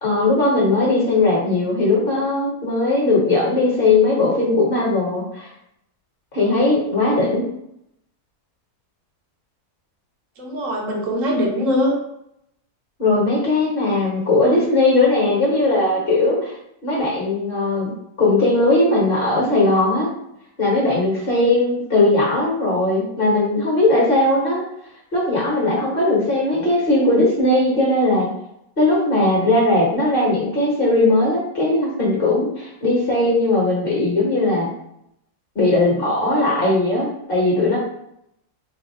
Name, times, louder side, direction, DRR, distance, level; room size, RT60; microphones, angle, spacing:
voice 1, 0.0-5.5 6.3-7.4 13.0-16.5 16.8-17.9 18.2-20.1 20.6-24.6 25.1-28.3 28.8-34.7 35.5-37.8, left 2 dB, 40° left, -4 dB, 1.3 m, -18 dB
voice 2, 10.4-12.0, equal, 60° right, -1 dB, 1.1 m, -21 dB
3.6 x 2.6 x 4.3 m, 0.78 s
omnidirectional pair, 1.6 m